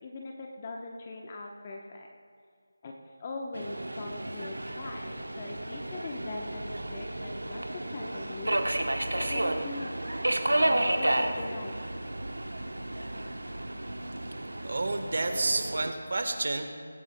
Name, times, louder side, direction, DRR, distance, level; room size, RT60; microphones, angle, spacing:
voice 1, 0.0-2.1 2.8-2.9 3.2-8.6 9.1-9.9 10.6-11.8, left 3 dB, 30° left, 1 dB, 0.9 m, -41 dB
Subway metro underground, 3.5-15.9, right 1 dB, 85° right, 1.0 m, -32 dB
voice 2, 14.6-16.7, right 2 dB, 60° right, 7 dB, 1.2 m, -30 dB
17.0 x 16.5 x 2.2 m, 2.1 s
figure-of-eight pair, 165°, 0 cm